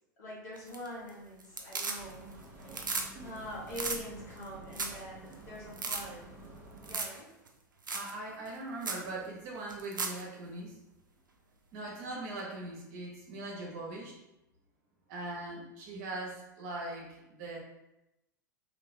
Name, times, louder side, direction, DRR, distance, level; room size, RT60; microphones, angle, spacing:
voice 1, 0.2-2.3 2.6-6.3 6.8-7.3, left 1 dB, 60° left, -5 dB, 1.5 m, -44 dB
sound 1, 0.6-1.1 1.4-2.3 2.6-3.1 3.4-3.5 3.7-4.0 4.4-4.5 4.7-5.0 5.3-5.4 5.7-6.0 6.8-7.2 7.5-7.6 7.9-8.1 8.5-8.6 8.8-9.0 9.7-10.2 12.4-12.5, right 4 dB, 80° right, 0.5 m, -35 dB
sound 2, 2.0-7.0, right 2 dB, 20° right, 1.0 m, -50 dB
voice 2, 7.9-10.8 11.7-14.2 15.1-17.6, right 2 dB, 50° right, -2 dB, 1.2 m, -41 dB
3.0 x 2.9 x 3.2 m, 0.91 s
figure-of-eight pair, 90°, 10 cm